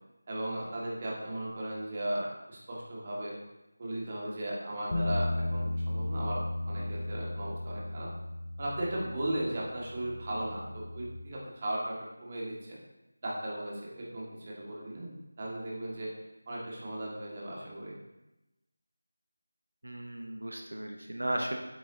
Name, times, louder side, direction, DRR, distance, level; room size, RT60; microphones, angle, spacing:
voice 1, 0.3-3.4 3.8-8.1 8.6-12.8 13.2-16.1 16.5-17.9, right 1 dB, 30° right, -4 dB, 2.0 m, -36 dB
sound 1, 4.9-11.2, left 1 dB, 50° left, 1.2 m, -35 dB
voice 2, 19.8-21.6, right 1 dB, 85° right, 2 dB, 0.9 m, -35 dB
8.6 x 7.9 x 2.8 m, 0.97 s
figure-of-eight pair, 170°, 0 cm